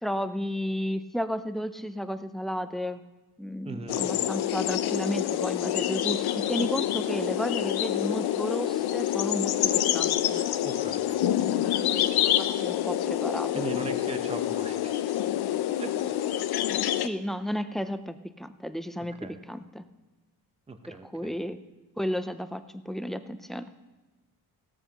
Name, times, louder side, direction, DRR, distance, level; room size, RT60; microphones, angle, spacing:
voice 1, 0.0-3.0 3.4-10.4 11.9-12.1 12.4-13.6 17.0-19.2 19.5-19.8 20.9-21.6 22.0-23.7, equal, ahead, 10 dB, 0.4 m, -33 dB
voice 2, 3.6-4.1 10.6-11.0 13.5-14.9 15.8-15.9 19.2-19.4 20.7-21.3, right 3 dB, 15° right, 7 dB, 0.9 m, -38 dB
sound 1, 3.9-17.1, left 12 dB, 75° left, 0.6 m, -27 dB
17.0 x 13.5 x 3.0 m, 1.2 s
cardioid pair, 125°, 38 cm